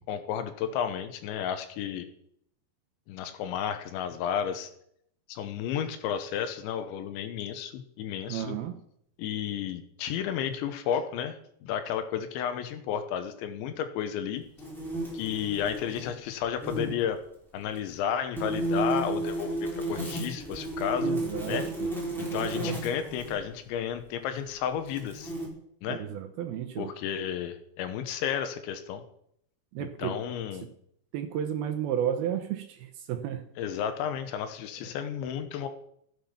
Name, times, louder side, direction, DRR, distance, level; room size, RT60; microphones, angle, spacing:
voice 1, 0.0-2.1 3.1-4.7 5.3-8.6 9.2-14.4 15.1-17.2 17.5-21.2 21.5-21.7 22.2-25.3 25.8-26.0 26.8-29.0 29.8-30.7 33.6-35.7, left 9 dB, 90° left, 9 dB, 3.4 m, -32 dB
voice 2, 8.3-8.8 21.0-21.9 22.4-22.7 25.9-26.9 29.7-30.2 31.1-33.4, right 9 dB, 75° right, 6 dB, 2.4 m, -33 dB
sound 1, 14.6-16.1 16.4-16.9 18.4-23.4 24.2-24.3 24.9-25.5, right 1 dB, ahead, 3.6 m, -33 dB
15.0 x 8.6 x 5.7 m, 0.71 s
omnidirectional pair, 5.2 m